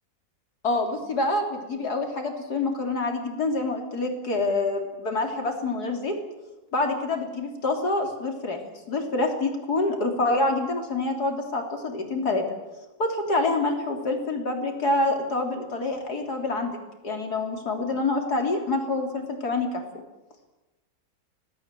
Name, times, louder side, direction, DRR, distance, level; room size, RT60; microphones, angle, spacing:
voice 1, 0.6-6.2 6.7-8.6 8.9-12.5 13.0-16.7 17.0-19.7, left 2 dB, 90° left, 3 dB, 3.9 m, -26 dB
26.0 x 18.5 x 7.7 m, 1.1 s
omnidirectional pair, 1.6 m